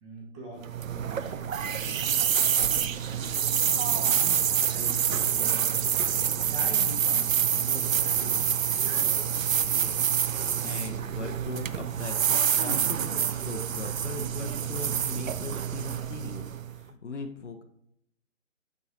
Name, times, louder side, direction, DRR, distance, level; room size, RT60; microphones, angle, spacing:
voice 1, 0.0-9.0, right 1 dB, 20° right, -2 dB, 1.3 m, -44 dB
sound 1, 0.6-16.8, right 8 dB, 80° right, 0.5 m, -27 dB
voice 2, 9.6-10.1 10.6-12.1 12.6-17.6, left 4 dB, 60° left, 5 dB, 0.7 m, -39 dB
9.8 x 3.9 x 2.6 m, 0.72 s
figure-of-eight pair, 140°, 40 cm